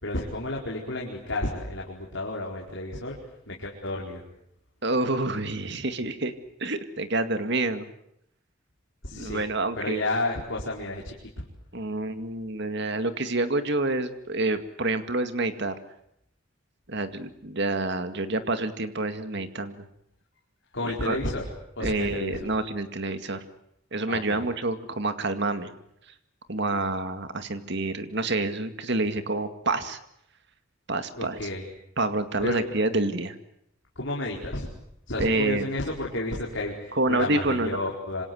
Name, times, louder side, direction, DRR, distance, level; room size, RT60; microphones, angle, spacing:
voice 1, 0.0-3.2 3.5-4.2 9.0-9.4 9.7-11.5 20.7-21.4 21.7-22.5 24.1-24.4 31.1-31.7 32.4-32.6 34.0-34.7 35.1-38.2, left 2 dB, 60° left, -2 dB, 4.6 m, -31 dB
voice 2, 4.8-6.3 6.6-7.9 9.1-10.0 11.7-15.8 16.9-19.9 20.8-21.2 21.8-23.4 23.9-25.7 26.5-30.0 30.9-31.4 32.0-33.4 35.2-35.6 37.0-37.8, right 2 dB, 55° right, 9 dB, 2.1 m, -28 dB
26.5 x 26.5 x 8.0 m, 0.76 s
head